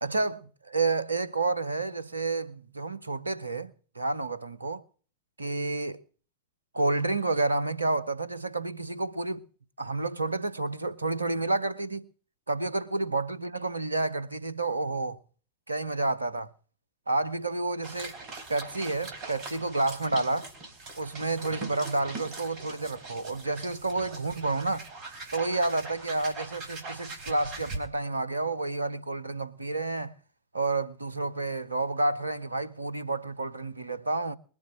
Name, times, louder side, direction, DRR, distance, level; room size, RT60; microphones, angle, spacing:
voice 1, 0.0-4.8 5.4-6.0 6.7-9.4 9.8-12.1 12.5-15.2 15.7-16.5 17.1-18.1 18.5-20.5 21.0-24.9 25.3-30.1 30.5-34.3, right 2 dB, 80° right, 0.9 m, -30 dB
sound 1, 17.8-27.8, right 3 dB, 40° right, 3.8 m, -42 dB
21.0 x 7.3 x 7.7 m
figure-of-eight pair, 90°, 0 cm